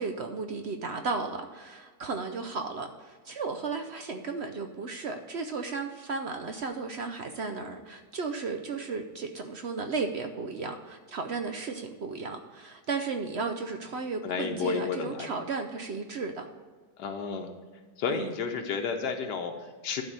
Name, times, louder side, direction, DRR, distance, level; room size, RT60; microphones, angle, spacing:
voice 1, 0.0-16.4 18.1-18.3, right 4 dB, 65° right, 6 dB, 0.6 m, -34 dB
voice 2, 14.2-15.3 17.0-17.5 18.0-20.0, left 6 dB, 80° left, 4 dB, 1.4 m, -32 dB
11.5 x 4.1 x 6.6 m, 1.4 s
omnidirectional pair, 1.8 m